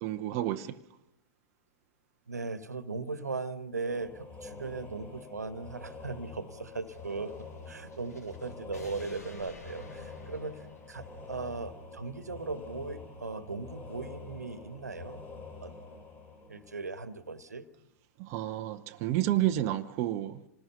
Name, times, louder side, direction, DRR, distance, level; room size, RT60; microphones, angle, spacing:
voice 1, 0.0-0.8 18.2-20.4, right 13 dB, 35° right, 0.8 m, -30 dB
voice 2, 2.3-7.4 7.7-15.2 15.6-15.8 16.5-17.7, right 3 dB, 80° right, 1.4 m, -38 dB
sound 1, 3.9-17.4, left 3 dB, 20° left, 4.0 m, -47 dB
sound 2, 6.7-11.5, left 2 dB, 75° left, 3.1 m, -52 dB
26.5 x 19.5 x 6.9 m
figure-of-eight pair, 105°, 9 cm